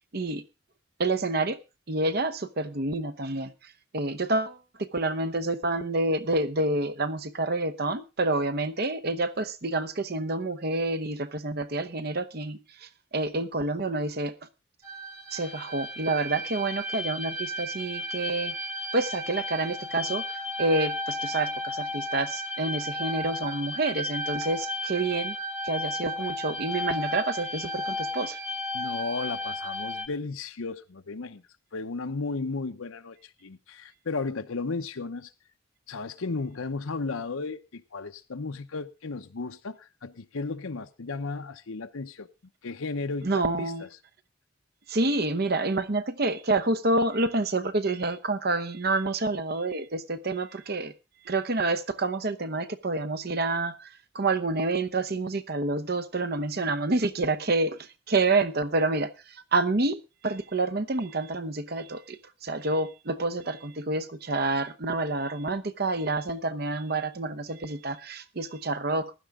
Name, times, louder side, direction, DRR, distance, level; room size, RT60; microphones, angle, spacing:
voice 1, 1.0-1.6 1.9-3.5 3.9-14.3 15.3-18.6 18.9-20.2 20.6-25.4 25.6-28.4 43.2-43.8 44.9-50.9 51.3-53.9 54.1-57.8 58.1-69.1, right 2 dB, 50° right, 0.9 m, -28 dB
sound 1, 14.8-30.1, left 1 dB, 15° right, 1.4 m, -34 dB
voice 2, 28.7-31.4 31.7-35.3 35.9-42.3 42.6-43.7, left 3 dB, 80° left, 0.8 m, -34 dB
15.5 x 12.0 x 3.6 m
head